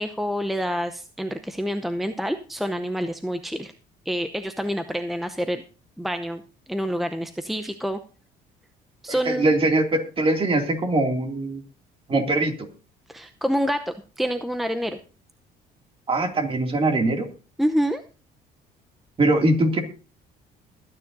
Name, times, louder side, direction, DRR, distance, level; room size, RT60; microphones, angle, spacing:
voice 1, 0.0-3.7 4.1-5.6 6.0-6.4 6.7-8.0 9.0-9.5 13.1-15.0 17.6-18.0, equal, ahead, 9 dB, 0.7 m, -27 dB
voice 2, 9.1-11.6 12.1-12.7 16.1-17.3 19.2-19.8, right 2 dB, 30° right, 4 dB, 2.5 m, -22 dB
21.5 x 9.6 x 2.7 m, 0.36 s
cardioid pair, 110°, 17 cm